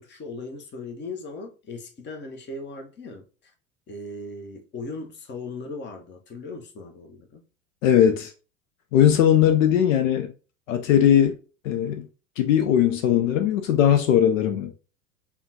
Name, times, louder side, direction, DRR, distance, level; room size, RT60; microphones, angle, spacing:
voice 1, 0.0-3.5 3.9-7.4, left 3 dB, 25° left, 0.9 m, -38 dB
voice 2, 7.8-8.3 8.9-10.3 10.7-11.3 11.6-12.1 12.4-14.7, left 10 dB, 70° left, 0.7 m, -19 dB
5.5 x 2.3 x 2.8 m
hypercardioid pair, 85°, 41 cm